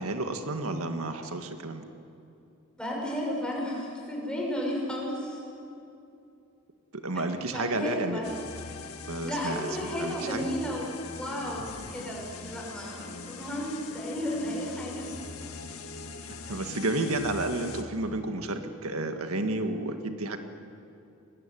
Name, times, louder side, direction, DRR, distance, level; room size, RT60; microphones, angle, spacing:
voice 1, 0.0-1.8 6.9-8.3 9.1-10.5 16.5-20.4, right 2 dB, 85° right, 6 dB, 1.8 m, -31 dB
voice 2, 2.8-5.4 7.5-8.3 9.2-15.1 16.5-16.6, equal, 5° left, -2 dB, 5.9 m, -33 dB
sound 1, 8.2-17.8, left 4 dB, 80° left, 1.8 m, -42 dB
23.5 x 20.5 x 9.9 m, 2.7 s
head